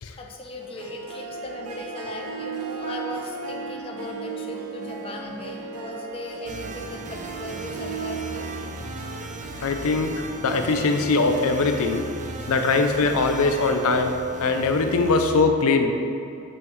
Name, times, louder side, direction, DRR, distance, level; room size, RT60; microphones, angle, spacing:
voice 1, 0.2-8.5, left 1 dB, 25° left, 1 dB, 0.5 m, -37 dB
Harp, 0.6-11.8, right 5 dB, 90° right, 0.6 m, -37 dB
sound 1, 6.5-15.4, right 2 dB, 35° right, 0.4 m, -37 dB
voice 2, 9.6-12.1 12.5-14.1 14.4-16.0, left 3 dB, 75° left, 6 dB, 0.5 m, -21 dB
7.9 x 5.6 x 3.1 m, 2.8 s
head